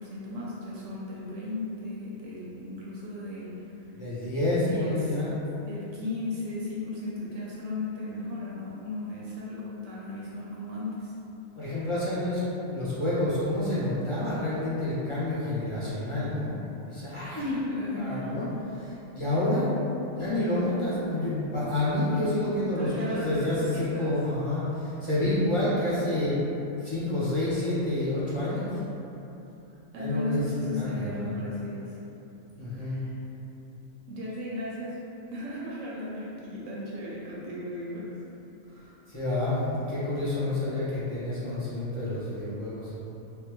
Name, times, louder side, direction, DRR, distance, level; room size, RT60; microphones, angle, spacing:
voice 1, 0.0-3.8 4.7-5.2 5.7-11.1 17.4-18.3 22.8-24.1 29.9-32.0 32.6-33.2 34.1-35.0 35.3-38.2 38.6-39.0, left 2 dB, 75° right, -6 dB, 0.9 m, -36 dB
voice 2, 4.0-5.4 11.5-12.4 12.7-16.5 16.9-17.6 17.9-19.7 20.1-26.4 26.8-28.8 30.0-31.4 32.6-33.1 39.1-42.9, left 1 dB, 30° left, -11 dB, 0.6 m, -28 dB
3.4 x 2.3 x 3.0 m, 2.9 s
omnidirectional pair, 1.4 m